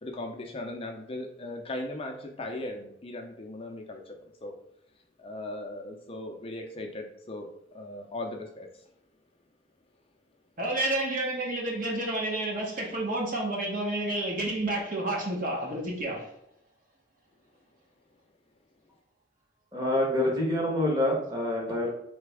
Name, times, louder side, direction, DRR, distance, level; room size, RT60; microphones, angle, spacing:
voice 1, 0.0-4.6 5.2-8.9, left 1 dB, 30° left, 3 dB, 0.4 m, -38 dB
voice 2, 10.6-16.3, right 1 dB, 45° right, -1 dB, 1.0 m, -30 dB
voice 3, 19.7-21.9, left 1 dB, 20° right, -2 dB, 1.1 m, -26 dB
3.9 x 3.3 x 3.4 m, 0.74 s
head